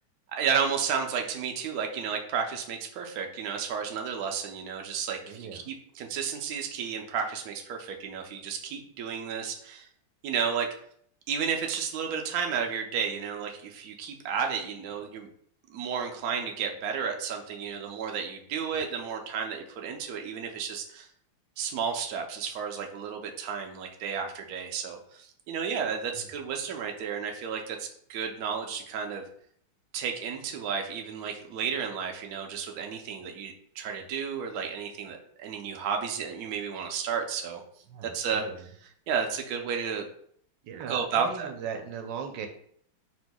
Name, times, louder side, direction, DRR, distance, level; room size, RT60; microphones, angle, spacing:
voice 1, 0.3-9.9 10.2-10.7 11.3-15.3 15.7-21.1 21.6-29.2 29.9-37.6 38.1-38.4 39.1-40.1 40.9-41.5, right 6 dB, 90° right, 3 dB, 0.8 m, -32 dB
voice 2, 5.2-5.6 26.1-26.2 37.9-38.7 40.6-42.5, right 7 dB, 70° right, 5 dB, 1.1 m, -38 dB
4.6 x 4.3 x 2.2 m, 0.63 s
omnidirectional pair, 2.3 m